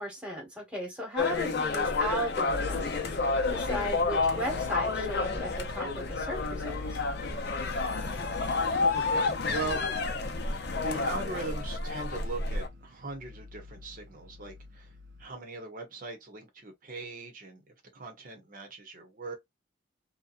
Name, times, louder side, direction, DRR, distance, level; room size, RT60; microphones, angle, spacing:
voice 1, 0.0-3.0 3.5-7.0, equal, 5° right, 1.2 m, -36 dB
sound 1, 1.2-12.7, left 3 dB, 55° left, 0.6 m, -30 dB
sound 2, 2.5-15.3, left 2 dB, 60° right, 0.5 m, -44 dB
voice 2, 8.9-9.8 10.8-14.9 15.2-17.6 17.9-19.4, right 3 dB, 45° right, 0.8 m, -40 dB
2.7 x 2.2 x 2.4 m
head